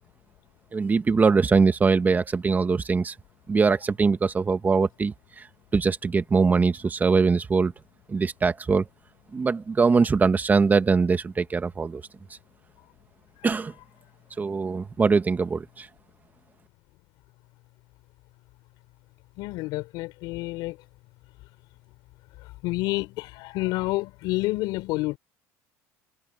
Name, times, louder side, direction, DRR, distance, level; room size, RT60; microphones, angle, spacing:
voice 1, 0.7-3.1 3.5-5.4 5.7-7.7 8.1-8.9 9.3-12.0 13.4-13.7 14.4-15.9, right 4 dB, 25° right, 1.8 m, -22 dB
voice 2, 19.4-20.8 22.6-25.2, left 20 dB, 70° left, 4.8 m, -29 dB
supercardioid pair, 95°, 7 cm